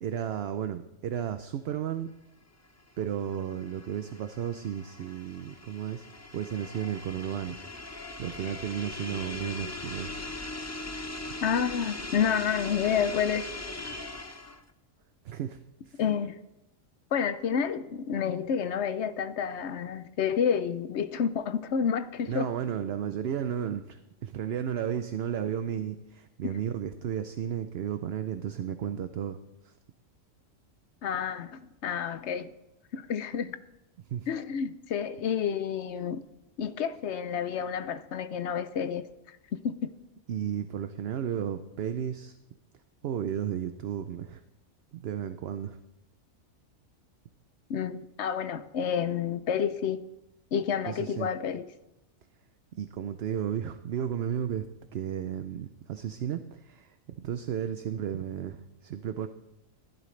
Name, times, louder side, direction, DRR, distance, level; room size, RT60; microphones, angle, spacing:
voice 1, 0.0-2.1 3.0-6.1 6.3-7.6 8.2-10.1 15.2-15.6 15.9-16.0 22.3-29.4 29.6-29.7 34.1-34.3 40.3-42.4 43.0-44.4 44.9-45.8 50.9-51.3 52.7-54.7 54.9-56.9 57.2-59.3, right 9 dB, 60° right, 0.7 m, -33 dB
sound 1, 2.8-14.7, left 2 dB, 20° left, 0.4 m, -40 dB
voice 2, 11.4-13.5 16.0-16.4 17.1-22.5 26.4-26.5 31.0-32.5 32.9-33.6 34.3-36.2 36.6-39.1 39.6-39.9 47.7-50.0 50.5-51.6, left 7 dB, 60° left, 0.9 m, -29 dB
15.0 x 11.5 x 3.2 m
omnidirectional pair, 1.4 m